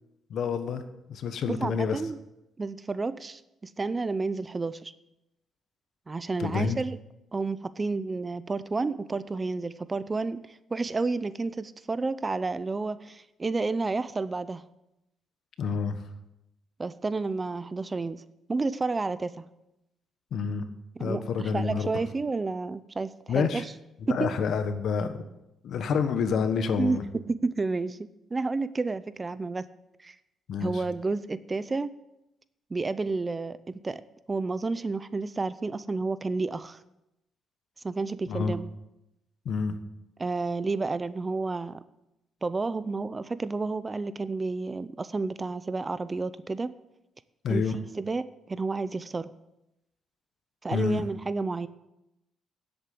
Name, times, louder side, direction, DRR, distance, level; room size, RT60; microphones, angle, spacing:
voice 1, 0.3-0.8 1.1-2.0 6.4-6.8 15.6-16.0 20.3-20.7 21.0-21.9 23.3-23.6 24.1-25.1 25.6-27.0 30.5-30.8 38.3-38.5 39.4-39.8 47.4-47.8 50.7-51.0, left 6 dB, 65° left, 9 dB, 1.2 m, -28 dB
voice 2, 1.5-2.2 2.6-4.9 6.1-7.0 7.3-14.6 16.8-18.2 18.5-19.5 21.0-23.7 24.1-24.3 26.8-28.0 28.3-29.7 30.0-30.2 30.6-31.9 32.7-34.0 34.3-36.8 37.8-38.7 40.2-41.8 42.4-46.7 47.5-49.3 50.6-51.7, right 3 dB, 25° right, 15 dB, 0.6 m, -30 dB
10.0 x 8.1 x 7.7 m, 0.89 s
cardioid pair, 90°, 0 cm